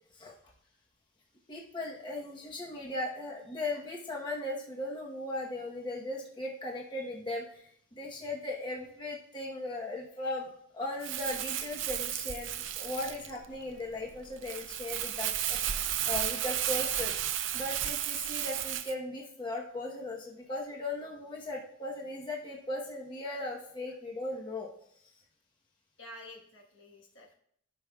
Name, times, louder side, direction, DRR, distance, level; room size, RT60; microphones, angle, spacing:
voice 1, 1.5-15.6 16.1-17.1 17.5-24.7, left 2 dB, 25° left, -2 dB, 1.0 m, -38 dB
Crumpling crinkling, 11.0-18.9, right 11 dB, 70° right, 0.5 m, -33 dB
voice 2, 26.0-27.3, left 1 dB, 65° left, -1 dB, 1.3 m, -50 dB
14.0 x 5.9 x 2.3 m, 0.67 s
head